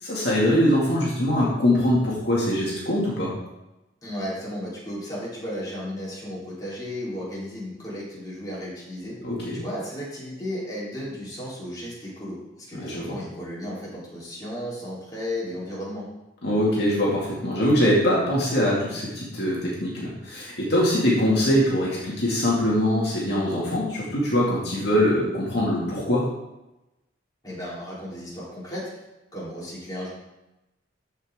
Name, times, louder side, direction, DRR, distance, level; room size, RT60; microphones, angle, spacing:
voice 1, 0.0-3.3 9.2-9.6 12.8-13.2 16.4-26.2, equal, 60° left, -5 dB, 2.2 m, -23 dB
voice 2, 4.0-9.2 9.5-16.1 27.4-28.9 29.3-30.1, equal, 20° left, -8 dB, 3.6 m, -34 dB
13.5 x 5.6 x 3.7 m, 0.97 s
head